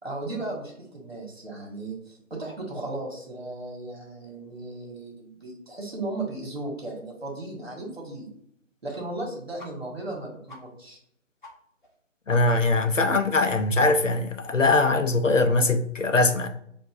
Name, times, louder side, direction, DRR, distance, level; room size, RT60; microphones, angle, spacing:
voice 1, 0.0-8.3 8.8-11.0, right 2 dB, 50° right, 1.6 m, -36 dB
sound 1, 9.6-9.7 10.0-10.1 10.5-10.6 11.0-11.1 11.4-11.5 11.8-11.9 12.3-12.4 12.7-12.8 13.1-13.2 13.5-13.6 13.9-14.3, left 1 dB, 40° left, 0.8 m, -45 dB
voice 2, 12.3-16.5, left 3 dB, 70° left, 0.7 m, -22 dB
6.8 x 2.6 x 2.4 m
figure-of-eight pair, 165°, 39 cm